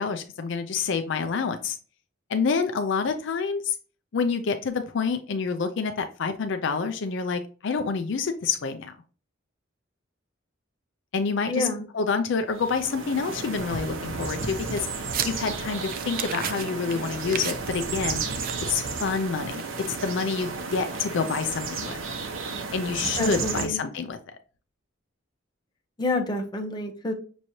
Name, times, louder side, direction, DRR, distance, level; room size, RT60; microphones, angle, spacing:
voice 1, 0.0-1.8 2.3-3.8 4.1-8.9 11.1-11.7 11.9-14.9 15.2-18.2 18.7-22.0 22.7-24.2, left 5 dB, 65° left, 7 dB, 0.5 m, -27 dB
voice 2, 11.5-11.8 23.2-23.8 26.0-27.1, left 2 dB, 20° left, 3 dB, 0.7 m, -28 dB
sound 1, 12.5-23.7, right 4 dB, 80° right, 0.9 m, -33 dB
sound 2, 14.4-20.7, right 8 dB, 45° right, 0.4 m, -37 dB
6.1 x 3.1 x 2.7 m, 0.39 s
head